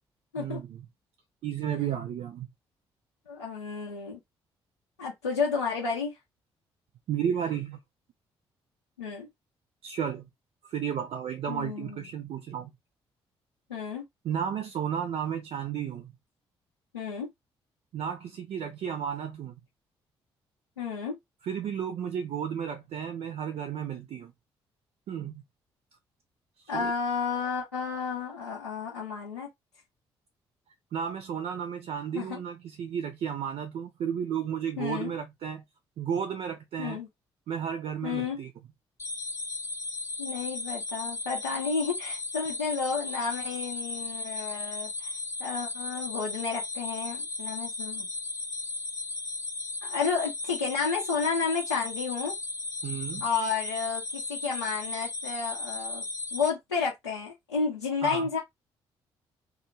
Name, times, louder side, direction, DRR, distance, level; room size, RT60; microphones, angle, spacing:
voice 1, 0.4-0.8 1.4-2.5 7.1-7.8 9.8-10.3 10.6-12.7 14.2-16.1 17.9-19.5 21.4-24.3 25.1-25.4 26.7-26.9 30.9-35.6 36.0-37.0 37.5-38.5 52.8-53.2 58.0-58.3, right 8 dB, 50° right, 0.6 m, -33 dB
voice 2, 3.3-4.2 5.0-6.1 9.0-9.3 11.5-12.0 13.7-14.0 16.9-17.3 20.8-21.2 26.7-29.5 32.1-32.4 34.8-35.1 36.8-37.1 38.0-38.4 40.2-44.9 45.4-48.1 49.8-52.3 53.2-56.0 56.3-58.4, left 5 dB, 85° left, 0.6 m, -31 dB
sound 1, 39.0-56.5, left 2 dB, 20° left, 0.7 m, -36 dB
2.4 x 2.4 x 3.0 m
figure-of-eight pair, 40°, 13 cm